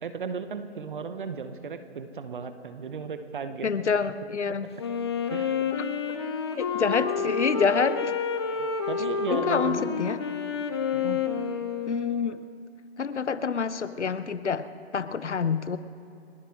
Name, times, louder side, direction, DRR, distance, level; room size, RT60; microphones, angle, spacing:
voice 1, 0.0-3.7 5.3-5.5 8.6-10.1 10.9-11.2, right 5 dB, 45° right, 10 dB, 1.0 m, -35 dB
voice 2, 3.6-4.7 6.6-8.1 9.3-10.2 11.9-12.4 13.0-14.7 14.9-15.8, left 6 dB, 80° left, 14 dB, 0.9 m, -27 dB
Wind instrument woodwind instrument, 4.8-12.5, left 6 dB, 25° left, 0.7 m, -29 dB
29.5 x 10.0 x 3.7 m, 2.5 s
hypercardioid pair, 155°, 34 cm